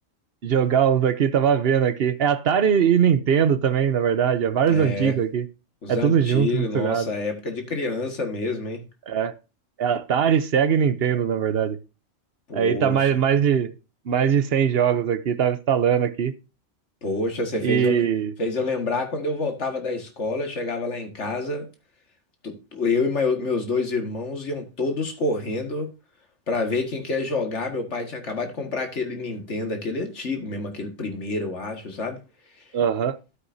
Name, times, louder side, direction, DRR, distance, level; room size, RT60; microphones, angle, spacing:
voice 1, 0.4-5.5 5.9-7.1 9.1-9.3 9.8-11.8 12.5-13.7 14.1-16.3 17.6-18.3 32.7-33.2, right 8 dB, 60° right, 1.0 m, -21 dB
voice 2, 4.7-5.2 5.8-8.8 12.5-13.1 17.0-18.0 18.4-21.7 22.4-25.9 26.5-32.2 32.6-32.7, left 3 dB, 80° left, 2.2 m, -27 dB
13.0 x 7.9 x 2.7 m
omnidirectional pair, 1.2 m